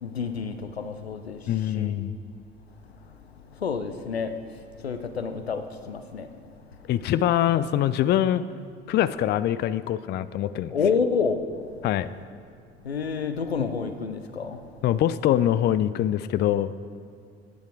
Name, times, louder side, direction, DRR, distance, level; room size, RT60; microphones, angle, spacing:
voice 1, 0.0-1.4 1.7-1.9 3.6-4.3 4.8-6.3 10.7-11.4 12.8-14.6, left 5 dB, 85° left, 9 dB, 0.7 m, -28 dB
voice 2, 1.5-2.2 6.9-8.4 8.9-10.7 11.8-12.1 13.6-13.7 14.8-16.7, left 11 dB, 35° left, 15 dB, 0.4 m, -24 dB
14.5 x 9.4 x 4.8 m, 2.2 s
figure-of-eight pair, 55°, 31 cm